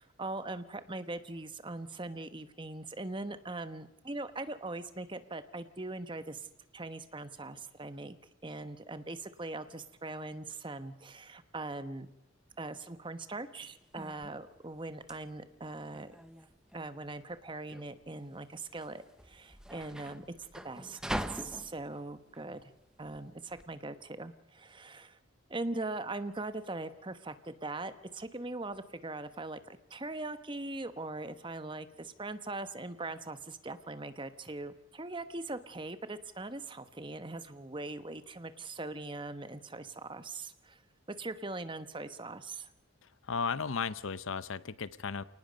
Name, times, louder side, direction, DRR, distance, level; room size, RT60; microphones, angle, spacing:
voice 1, 0.0-6.5 6.7-8.2 8.4-12.1 12.6-16.1 16.7-22.6 23.0-25.2 25.5-40.8 41.1-42.7, right 2 dB, 25° right, 11 dB, 1.1 m, -41 dB
sound 1, 13.6-23.7, equal, 5° right, 0.8 m, -44 dB
voice 2, 43.3-45.2, left 5 dB, 75° left, 17 dB, 0.7 m, -35 dB
28.0 x 19.0 x 5.2 m, 0.87 s
head